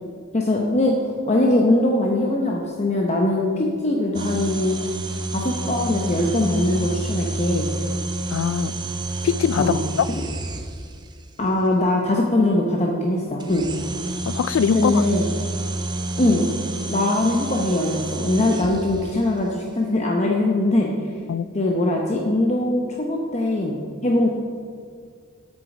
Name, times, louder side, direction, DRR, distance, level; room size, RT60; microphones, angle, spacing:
voice 1, 0.3-0.9 1.3-5.0 5.3-7.7 9.6-9.8 11.4-13.7 14.7-15.3 16.2-16.4 16.9-20.9 21.5-24.3, left 1 dB, 30° left, 0.8 m, -21 dB
sound 1, 4.1-11.1 13.4-19.2, right 2 dB, 20° right, 0.7 m, -29 dB
voice 2, 8.3-8.7 9.2-10.1 14.3-15.1 21.3-21.5, left 7 dB, 65° left, 0.3 m, -22 dB
8.3 x 8.3 x 6.0 m
head